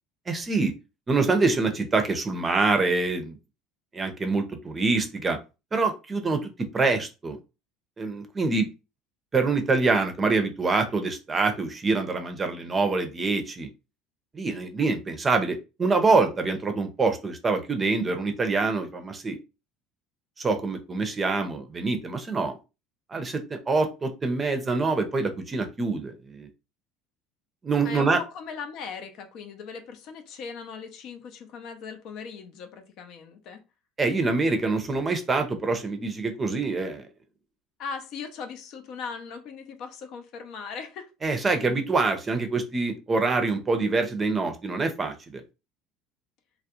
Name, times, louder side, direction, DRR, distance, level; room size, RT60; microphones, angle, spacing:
voice 1, 0.3-0.7 1.1-3.4 3.9-5.4 5.7-7.4 8.0-8.7 9.3-13.7 14.3-19.4 20.4-22.5 23.1-26.5 27.6-28.2 34.0-37.0 41.2-45.4, right 3 dB, 25° right, 0.5 m, -25 dB
voice 2, 27.8-33.6 37.8-41.1, left 5 dB, 60° left, 0.5 m, -39 dB
2.3 x 2.0 x 2.8 m
supercardioid pair, 95°, 0 cm